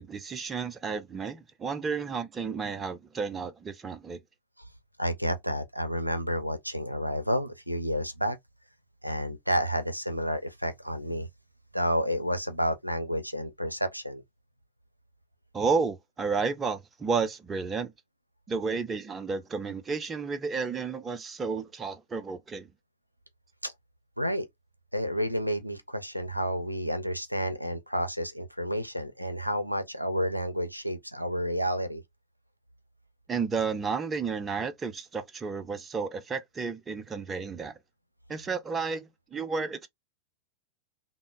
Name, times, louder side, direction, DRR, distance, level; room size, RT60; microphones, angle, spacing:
voice 1, 0.0-4.2 15.5-17.9 18.5-22.7 33.3-37.8 38.3-39.9, right 5 dB, 20° right, 0.5 m, -32 dB
voice 2, 5.0-8.4 9.0-11.3 11.7-14.2 23.6-23.7 24.2-24.5 24.9-32.0, equal, 90° right, 0.4 m, -30 dB
3.5 x 2.0 x 2.4 m
figure-of-eight pair, 90°, 0 cm